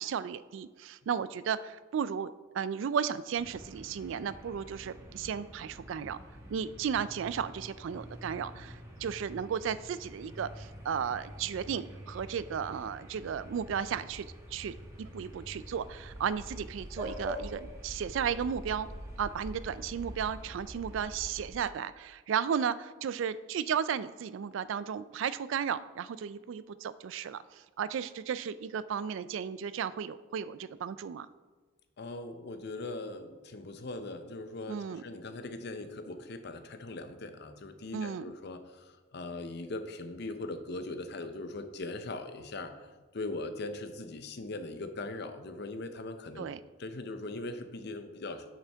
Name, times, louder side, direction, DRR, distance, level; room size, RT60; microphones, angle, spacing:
voice 1, 0.0-6.2 6.5-18.9 19.2-31.3 34.7-35.0 37.9-38.3 46.4-46.6, right 7 dB, 65° right, 15 dB, 0.3 m, -34 dB
sound 1, 3.4-21.5, equal, 15° right, 1.1 m, -46 dB
voice 2, 32.0-42.8 43.1-46.5 46.8-48.4, left 2 dB, 55° left, 9 dB, 0.7 m, -40 dB
8.6 x 7.2 x 3.4 m, 1.3 s
head